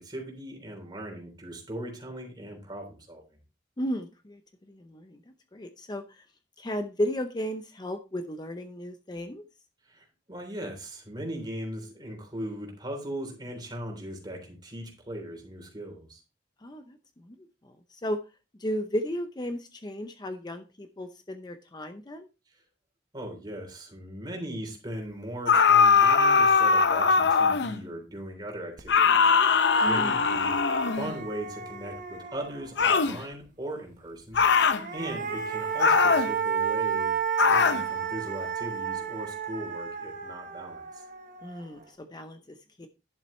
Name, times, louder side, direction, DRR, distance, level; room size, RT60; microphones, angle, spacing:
voice 1, 0.0-3.2 9.9-16.2 23.1-29.5 29.8-40.8, right 1 dB, 25° right, 2 dB, 3.4 m, -39 dB
voice 2, 3.8-4.4 4.7-5.2 5.5-6.3 6.6-9.4 16.6-17.4 17.6-18.2 18.6-22.3 29.8-30.3 34.8-35.1 41.4-42.9, equal, 25° left, 8 dB, 0.6 m, -34 dB
sound 1, 25.5-27.8 28.9-31.1 32.8-33.2 34.3-34.8 35.8-36.3 37.4-37.8, left 5 dB, 70° left, 0.6 m, -21 dB
sound 2, 28.8-28.9 29.2-32.9 34.5-41.8, right 7 dB, 50° right, 1.1 m, -33 dB
11.0 x 7.2 x 3.1 m, 0.30 s
head